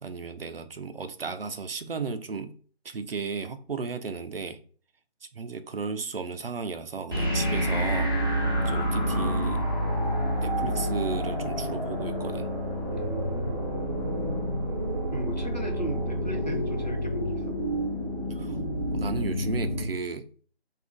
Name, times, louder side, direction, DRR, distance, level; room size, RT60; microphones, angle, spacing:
voice 1, 0.0-2.5 2.8-4.6 5.3-8.1 8.7-9.7 10.4-12.5 18.3-18.6 18.9-20.5, right 4 dB, 65° right, 10 dB, 0.5 m, -34 dB
sound 1, 7.1-19.9, equal, 20° right, 0.7 m, -28 dB
voice 2, 8.4-8.8 12.9-13.7 15.1-17.6, right 1 dB, 45° left, 3 dB, 0.5 m, -36 dB
2.6 x 2.4 x 3.7 m, 0.43 s
figure-of-eight pair, 160°, 32 cm